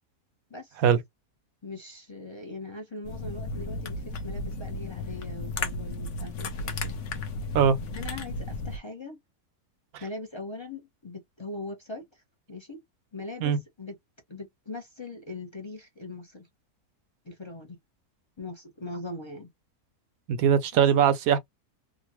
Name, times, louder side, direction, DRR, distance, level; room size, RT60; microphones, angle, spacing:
voice 1, 1.6-7.0 7.9-9.2 10.0-12.2 12.5-12.8 13.1-13.9 14.3-16.5 17.2-17.8 18.4-19.5 20.7-20.8, left 2 dB, 30° left, 0.5 m, -40 dB
sound 1, 3.0-8.8, left 2 dB, 60° left, 0.9 m, -34 dB
voice 2, 20.3-21.4, right 8 dB, 70° right, 1.0 m, -21 dB
3.8 x 2.1 x 2.9 m
omnidirectional pair, 1.7 m